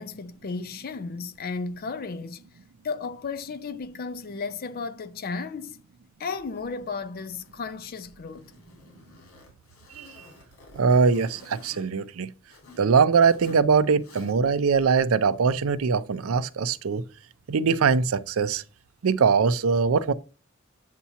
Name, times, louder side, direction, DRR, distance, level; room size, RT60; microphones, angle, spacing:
voice 1, 0.0-2.4 2.8-5.8 6.2-8.5, left 4 dB, 45° left, 0.5 m, -34 dB
Zipper (clothing), 6.4-12.9 13.2-13.7 14.0-14.6, left 2 dB, 85° left, 2.6 m, -52 dB
voice 2, 10.8-12.3 12.8-17.0 17.5-18.6 19.0-20.1, right 5 dB, 75° right, 0.5 m, -22 dB
8.3 x 2.8 x 5.6 m
head